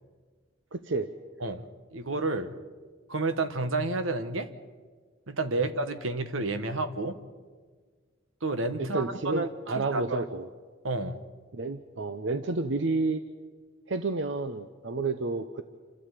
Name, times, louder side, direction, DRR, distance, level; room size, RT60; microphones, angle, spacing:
voice 1, 0.7-1.1 5.5-5.7 8.8-10.5 11.5-13.2 13.9-15.6, right 3 dB, 70° right, 9 dB, 0.8 m, -30 dB
voice 2, 1.4-2.5 3.1-4.5 5.3-7.2 8.4-10.2 10.8-11.2, right 2 dB, 90° right, 10 dB, 1.3 m, -30 dB
28.0 x 13.0 x 8.4 m, 1.5 s
head